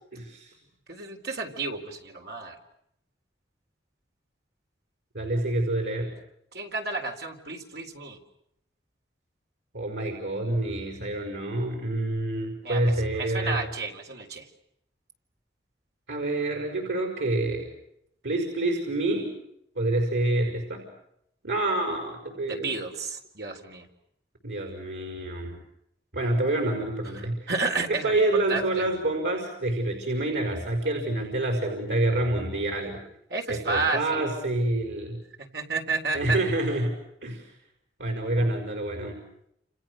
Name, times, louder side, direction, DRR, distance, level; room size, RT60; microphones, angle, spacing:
voice 1, 0.1-0.5 5.1-6.1 9.7-13.6 16.1-17.7 18.2-19.3 19.8-20.8 21.4-22.8 24.4-25.6 26.1-27.4 27.9-33.0 33.5-35.2 36.1-37.0 37.2-37.5 38.0-39.2, right 2 dB, 90° right, 3 dB, 5.4 m, -27 dB
voice 2, 0.9-2.6 6.5-8.2 12.6-14.5 22.4-23.9 27.1-28.8 33.3-34.2 35.5-36.4, right 3 dB, 65° right, 3 dB, 4.0 m, -31 dB
30.0 x 29.0 x 6.5 m, 0.76 s
head